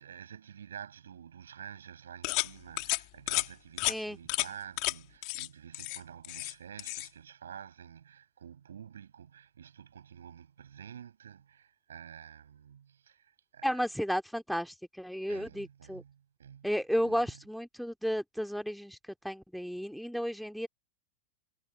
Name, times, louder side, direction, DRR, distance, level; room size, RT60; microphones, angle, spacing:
voice 1, 0.0-13.8 15.3-17.4, right 8 dB, 65° right, 6.8 m, -49 dB
sound 1, 2.2-2.5 2.8-3.0 3.3-3.5 3.8-3.9 4.3-4.5 4.8-4.9 5.2-5.5 5.7-6.5 6.8-7.1, left 30 dB, 45° left, 2.5 m, -31 dB
voice 2, 13.6-16.0 16.6-19.0 19.2-20.7, equal, ahead, 2.4 m, -33 dB
figure-of-eight pair, 90°, 0 cm